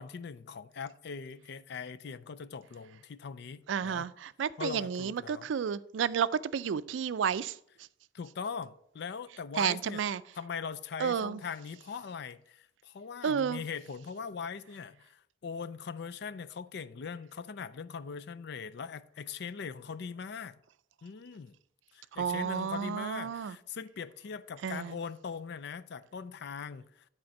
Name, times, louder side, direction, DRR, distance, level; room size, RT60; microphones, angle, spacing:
voice 1, 0.0-4.1 4.6-5.5 8.1-10.0 10.4-20.6 21.0-21.6 21.9-27.1, left 6 dB, 60° left, 0.4 m, -41 dB
voice 2, 3.7-7.9 9.5-10.2 11.0-11.4 13.2-13.6 22.1-23.6 24.6-25.0, right 7 dB, 75° right, 0.4 m, -31 dB
10.5 x 4.4 x 5.2 m
head